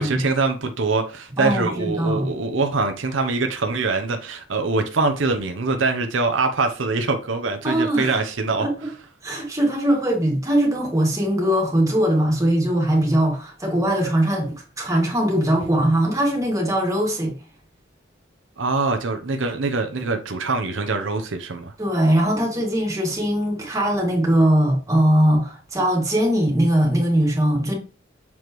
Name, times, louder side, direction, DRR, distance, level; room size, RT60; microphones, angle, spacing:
voice 1, 0.0-8.7 18.6-21.7, right 3 dB, 80° right, 0.8 m, -23 dB
voice 2, 1.4-2.3 7.6-8.2 8.6-8.9 9.2-17.4 21.8-27.7, right 1 dB, 15° right, 2.1 m, -21 dB
7.1 x 4.6 x 3.1 m
head